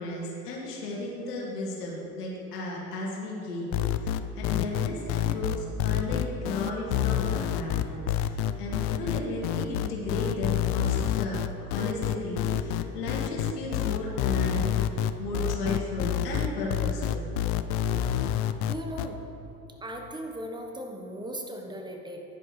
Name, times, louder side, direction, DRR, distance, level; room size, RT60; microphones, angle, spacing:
voice 1, 0.0-17.3, left 1 dB, 85° left, -3 dB, 2.2 m, -34 dB
sound 1, 3.7-19.1, left 11 dB, 50° left, 0.5 m, -27 dB
voice 2, 18.7-19.2 19.8-22.2, right 1 dB, 10° right, 2 dB, 1.1 m, -37 dB
10.5 x 10.5 x 3.3 m, 2.8 s
hypercardioid pair, 105°, 46 cm